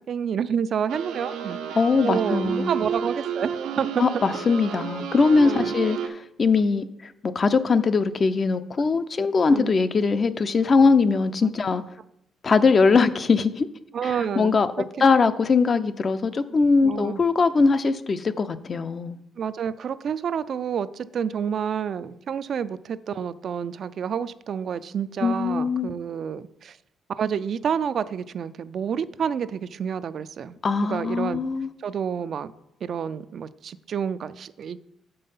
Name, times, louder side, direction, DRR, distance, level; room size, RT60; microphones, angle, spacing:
voice 1, 0.1-1.6 2.0-4.0 5.4-5.7 6.6-6.7 9.5-9.7 11.4-11.5 13.9-14.8 16.8-17.2 19.4-26.8 27.1-30.6 30.8-31.4 31.8-32.5 32.8-34.8, right 7 dB, 60° right, 0.4 m, -29 dB
sound 1, 0.9-6.1, right 7 dB, 90° right, 0.7 m, -31 dB
voice 2, 1.8-2.7 4.0-6.9 7.2-11.8 12.4-13.7 14.0-14.7 15.0-19.2 25.2-25.9 30.6-31.7, left 4 dB, 40° left, 0.5 m, -21 dB
6.6 x 5.4 x 5.5 m
cardioid pair, 90°, 0 cm